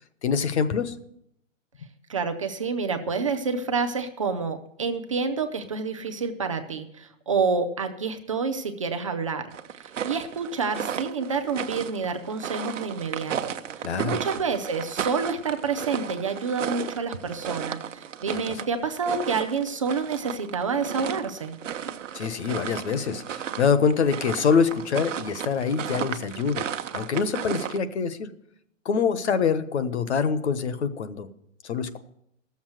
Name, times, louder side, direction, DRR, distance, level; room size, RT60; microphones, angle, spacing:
voice 1, 0.2-1.0 1.8-1.9 13.8-14.2 18.3-18.6 22.1-26.6 26.9-28.3 28.8-31.3 31.6-32.0, left 6 dB, 60° left, 11 dB, 1.2 m, -25 dB
voice 2, 2.1-9.4 9.7-21.6, right 5 dB, 25° right, 5 dB, 0.5 m, -28 dB
sound 1, 9.5-27.8, right 9 dB, 70° right, 1.0 m, -34 dB
14.0 x 7.2 x 7.7 m, 0.74 s
hypercardioid pair, 170°, 38 cm